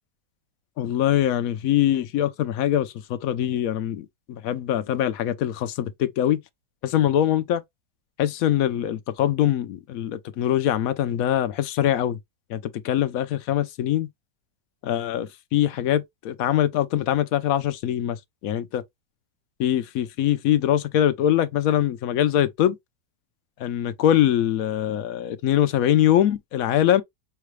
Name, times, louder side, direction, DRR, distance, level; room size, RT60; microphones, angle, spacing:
voice 1, 0.8-6.4 6.8-7.6 8.2-12.2 12.5-14.1 14.8-18.8 19.6-22.8 23.6-27.0, left 11 dB, 65° left, 1.0 m, -23 dB
5.8 x 2.3 x 3.2 m
omnidirectional pair, 1.8 m